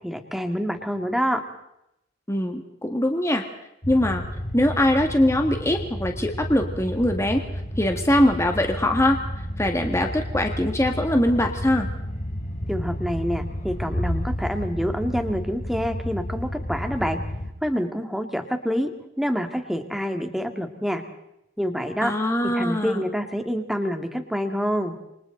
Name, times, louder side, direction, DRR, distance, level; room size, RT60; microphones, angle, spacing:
voice 1, 0.0-1.4 12.7-17.2 17.6-18.9 19.2-21.0 21.6-22.1 22.5-24.9, equal, ahead, 5 dB, 2.0 m, -27 dB
voice 2, 2.3-3.4 3.9-4.2 4.5-7.4 7.8-9.2 9.6-11.9 22.0-23.1, left 1 dB, 15° left, 4 dB, 1.8 m, -22 dB
sound 1, 3.8-17.5, equal, 45° left, 3.6 m, -31 dB
28.5 x 24.5 x 3.9 m, 0.82 s
head